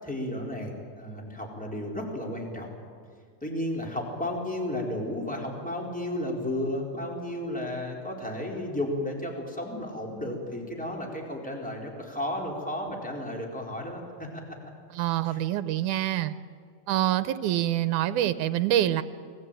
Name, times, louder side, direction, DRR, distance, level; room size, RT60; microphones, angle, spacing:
voice 1, 0.0-2.8 3.4-14.4 15.2-15.4, left 1 dB, ahead, 0 dB, 4.3 m, -33 dB
voice 2, 14.9-16.3 16.9-19.0, right 13 dB, 90° right, 12 dB, 2.4 m, -26 dB
30.0 x 21.5 x 9.2 m, 2.1 s
omnidirectional pair, 3.4 m